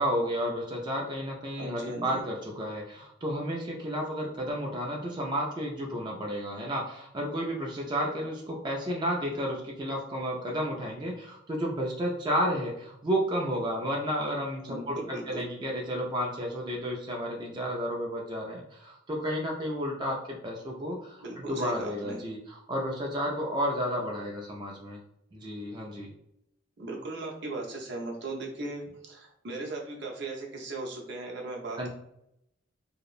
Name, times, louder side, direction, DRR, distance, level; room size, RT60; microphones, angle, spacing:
voice 1, 0.0-25.0 25.3-26.1 31.8-31.9, equal, 25° right, -2 dB, 0.3 m, -32 dB
voice 2, 1.6-2.2 14.7-15.4 21.2-22.2 26.8-31.9, right 2 dB, 65° right, -1 dB, 0.7 m, -37 dB
2.8 x 2.0 x 2.4 m, 0.79 s
head